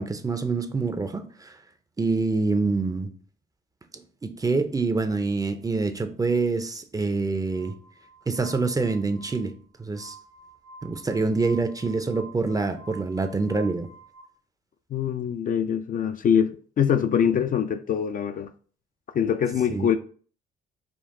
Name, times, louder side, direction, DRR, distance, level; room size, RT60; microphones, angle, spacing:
voice 1, 0.0-1.6 2.0-3.1 3.9-7.8 8.3-9.5 9.8-10.2 10.8-13.9 19.7-19.9, right 3 dB, 20° right, 0.5 m, -26 dB
Glass, 7.5-14.2, right 2 dB, 75° right, 1.0 m, -49 dB
voice 2, 14.9-18.5 19.1-20.0, left 8 dB, 45° left, 0.4 m, -24 dB
5.2 x 2.3 x 3.7 m
cardioid pair, 90°, 20 cm